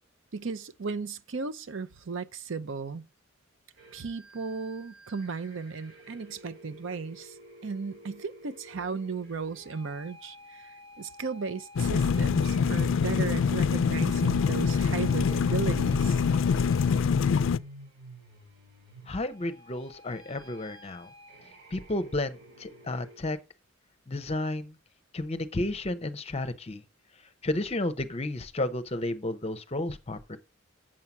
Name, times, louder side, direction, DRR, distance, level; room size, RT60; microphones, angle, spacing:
voice 1, 0.3-3.0 3.9-7.3 7.6-10.7 11.0-16.2, right 4 dB, 65° right, 0.6 m, -35 dB
sound 1, 3.8-23.2, equal, 85° right, 4.2 m, -51 dB
sound 2, 11.8-17.6, left 6 dB, 70° left, 0.4 m, -25 dB
voice 2, 19.1-21.1 21.7-23.4 24.1-24.8 25.1-26.8 27.4-30.4, left 2 dB, 30° left, 0.7 m, -32 dB
7.6 x 5.6 x 5.9 m
head